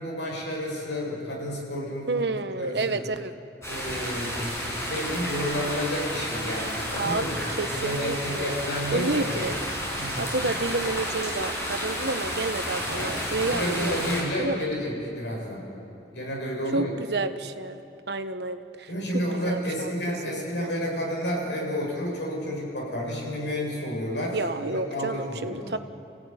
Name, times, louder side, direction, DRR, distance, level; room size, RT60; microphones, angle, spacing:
voice 1, 0.0-2.2 2.6-3.0 3.7-9.6 10.0-10.2 12.9-15.7 16.1-16.9 18.9-25.7, equal, 80° left, -2 dB, 7.6 m, -31 dB
voice 2, 2.1-3.3 7.0-8.6 8.9-9.6 10.2-14.0 14.4-14.7 16.7-17.8 18.1-19.9 20.3-20.7 24.3-25.8, right 3 dB, 70° right, 9 dB, 1.2 m, -30 dB
sound 1, 3.6-14.2, equal, 15° left, 6.4 m, -31 dB
29.0 x 17.0 x 9.8 m, 2.7 s
head